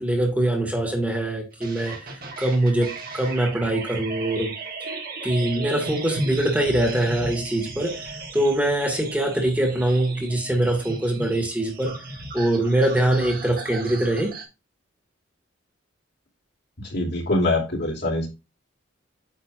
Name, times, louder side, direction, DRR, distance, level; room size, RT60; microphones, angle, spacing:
voice 1, 0.0-2.1 2.4-4.5 5.2-12.1 12.3-14.3, right 1 dB, 10° right, 1.7 m, -23 dB
sound 1, 1.6-14.4, right 2 dB, 50° right, 1.9 m, -36 dB
voice 2, 16.8-18.3, left 2 dB, 60° left, 2.8 m, -24 dB
9.1 x 6.7 x 2.4 m
head